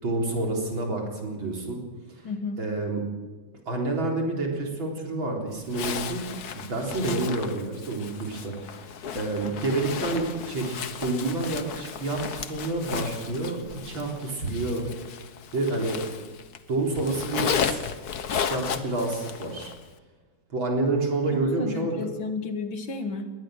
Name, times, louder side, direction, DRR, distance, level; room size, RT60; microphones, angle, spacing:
voice 1, 0.0-1.8 2.2-2.3 2.6-3.0 3.7-6.3 6.5-14.9 15.5-16.0 16.7-17.8 18.3-19.7 20.5-22.0, right 2 dB, 80° right, 0 dB, 4.7 m, -28 dB
voice 2, 2.2-2.6 21.3-23.3, left 3 dB, 90° left, 7 dB, 2.7 m, -32 dB
Zipper (clothing), 5.7-16.6 16.9-19.8, left 7 dB, 55° left, 1.5 m, -34 dB
21.0 x 19.0 x 6.5 m, 1.3 s
omnidirectional pair, 2.1 m